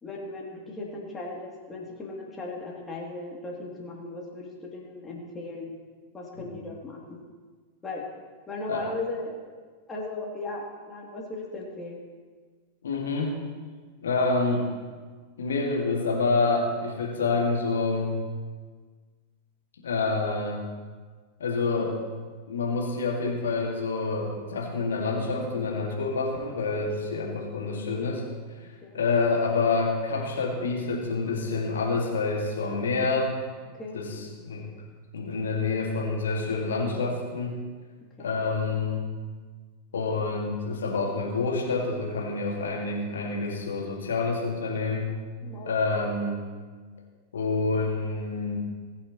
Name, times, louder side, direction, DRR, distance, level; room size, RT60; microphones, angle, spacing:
voice 1, 0.0-5.7 6.1-7.2 7.8-8.0 8.5-9.5 9.9-12.0 28.8-29.0 33.7-34.0 38.2-38.4 45.4-45.8, left 2 dB, 15° left, -3 dB, 2.9 m, -37 dB
voice 2, 12.8-13.4 14.0-14.7 15.4-18.2 19.8-20.6 21.4-22.0 22.5-28.2 28.9-33.4 33.9-34.1 34.4-34.6 35.1-37.6 38.2-39.1 39.9-45.1 45.7-46.4 47.3-48.6, left 3 dB, 65° left, -1 dB, 2.2 m, -27 dB
21.0 x 8.6 x 3.2 m, 1.5 s
figure-of-eight pair, 90°, 0 cm